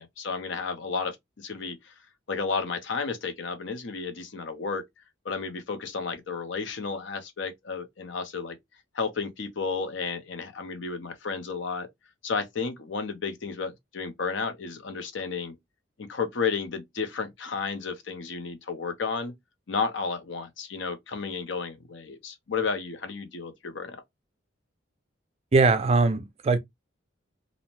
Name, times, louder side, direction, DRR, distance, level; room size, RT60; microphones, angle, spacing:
voice 1, 0.0-1.9 2.3-4.8 5.2-8.6 8.9-11.9 12.2-15.6 16.0-19.3 19.7-24.0, left 5 dB, 70° left, 0.6 m, -32 dB
voice 2, 25.5-26.6, right 3 dB, 30° right, 0.4 m, -21 dB
2.6 x 2.1 x 2.9 m
head